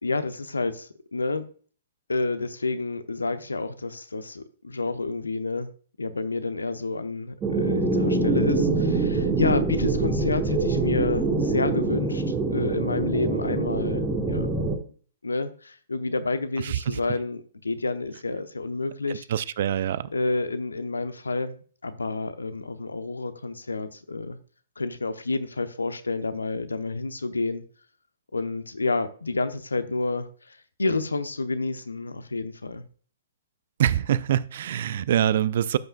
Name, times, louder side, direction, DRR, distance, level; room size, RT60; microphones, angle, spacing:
voice 1, 0.0-1.4 2.1-5.7 6.0-14.5 15.2-19.3 20.1-24.4 24.8-27.6 28.3-32.8, left 3 dB, 80° left, 0.8 m, -29 dB
sound 1, 7.4-14.8, right 3 dB, 15° right, 1.4 m, -25 dB
voice 2, 16.6-17.0 19.3-20.1 33.8-35.8, right 10 dB, 55° right, 0.4 m, -24 dB
13.5 x 5.5 x 2.3 m
figure-of-eight pair, 120°, 0 cm